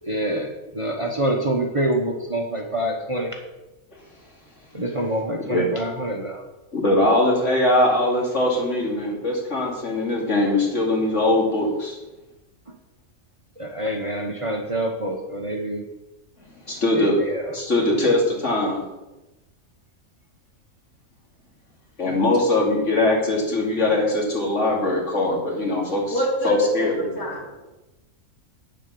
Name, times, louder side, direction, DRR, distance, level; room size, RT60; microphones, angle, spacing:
voice 1, 0.0-3.4 4.7-6.4 13.6-15.8 16.9-17.6, right 1 dB, 25° right, 2 dB, 1.0 m, -26 dB
voice 2, 6.7-12.0 16.7-17.2 17.5-18.8 22.0-26.1 26.4-27.3, left 1 dB, 55° left, -2 dB, 3.1 m, -21 dB
voice 3, 26.1-27.6, equal, 80° left, -4 dB, 3.7 m, -25 dB
9.0 x 7.4 x 6.8 m, 1.0 s
omnidirectional pair, 1.5 m